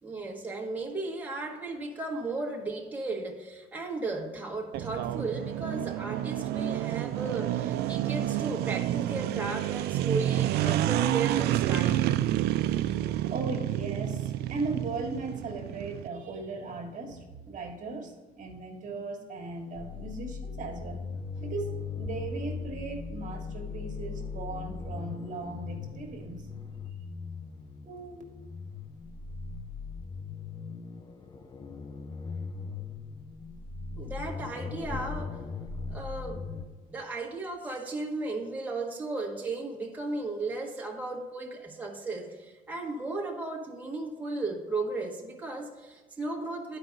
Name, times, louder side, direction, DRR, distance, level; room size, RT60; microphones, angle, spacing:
voice 1, 0.0-12.0 33.9-35.3 35.9-36.5 36.9-46.8, right 3 dB, 10° right, -2 dB, 1.3 m, -35 dB
sound 1, 4.7-16.1, right 13 dB, 75° right, 0.4 m, -29 dB
voice 2, 12.8-21.0 21.4-26.5 27.8-28.2 34.9-35.0, right 3 dB, 50° right, 2 dB, 1.5 m, -38 dB
sound 2, 19.7-36.6, left 5 dB, 25° left, 0.7 m, -39 dB
11.0 x 4.9 x 3.9 m, 1.3 s
cardioid pair, 110°, 17 cm